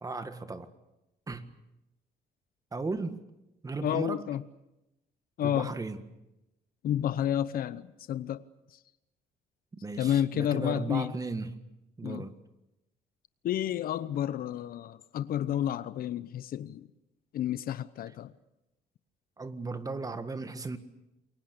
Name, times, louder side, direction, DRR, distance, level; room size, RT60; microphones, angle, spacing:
voice 1, 0.0-0.7 1.3-1.5 2.7-3.2 3.6-4.3 5.4-6.1 9.8-11.6 12.0-12.4 19.4-20.8, right 3 dB, 20° right, 1.7 m, -36 dB
voice 2, 3.8-4.4 5.4-5.7 6.8-8.4 10.0-11.1 12.0-12.3 13.4-16.9 17.3-18.3, left 10 dB, 60° left, 0.9 m, -30 dB
28.0 x 22.5 x 6.7 m
cardioid pair, 110°, 17 cm